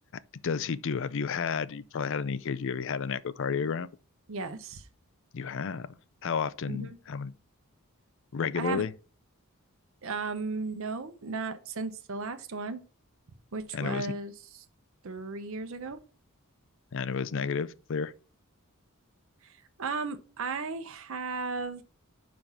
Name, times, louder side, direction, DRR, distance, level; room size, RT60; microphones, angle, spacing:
voice 1, 0.1-3.9 5.3-7.3 8.3-8.9 13.7-14.1 16.9-18.1, left 6 dB, 60° left, 0.5 m, -32 dB
voice 2, 4.3-4.9 6.7-7.0 8.6-8.8 10.0-12.8 13.5-14.3 15.0-16.0 19.4-21.8, right 4 dB, 65° right, 0.7 m, -35 dB
5.6 x 5.1 x 5.9 m
head